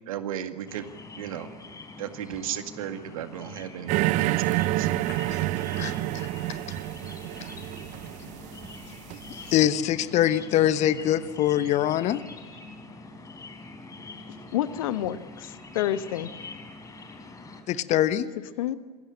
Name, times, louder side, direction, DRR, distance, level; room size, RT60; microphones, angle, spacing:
voice 1, 0.1-0.9 1.1-1.5 2.0-4.9, right 10 dB, 60° right, 8 dB, 2.0 m, -35 dB
sound 1, 0.7-17.6, left 3 dB, 15° left, 3.7 m, -44 dB
sound 2, 3.9-9.5, right 17 dB, 40° right, 0.6 m, -28 dB
voice 2, 5.1-5.4 5.8-6.0 6.5-6.6 9.3-12.2 17.7-18.3, left 12 dB, 35° left, 14 dB, 1.1 m, -24 dB
voice 3, 14.5-16.3 18.6-18.8, left 12 dB, 55° left, 13 dB, 1.2 m, -28 dB
27.0 x 21.0 x 7.8 m, 1.5 s
figure-of-eight pair, 85°, 20 cm